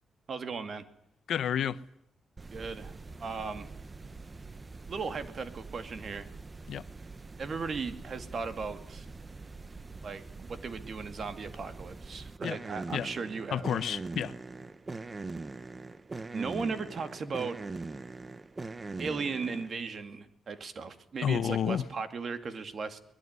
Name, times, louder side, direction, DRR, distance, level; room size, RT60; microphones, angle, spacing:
voice 1, 0.3-0.8 2.5-2.9 3.2-3.7 4.9-6.3 7.4-9.1 10.0-13.7 16.3-17.6 19.0-23.0, right 4 dB, 50° right, 2.4 m, -37 dB
voice 2, 1.3-1.8 6.7-6.8 12.4-12.6 12.9-13.1 13.5-14.3 21.2-21.8, left 9 dB, 75° left, 0.9 m, -30 dB
sound 1, 2.4-19.8, right 3 dB, 25° right, 1.0 m, -43 dB
22.5 x 21.0 x 9.7 m
cardioid pair, 110°, 0 cm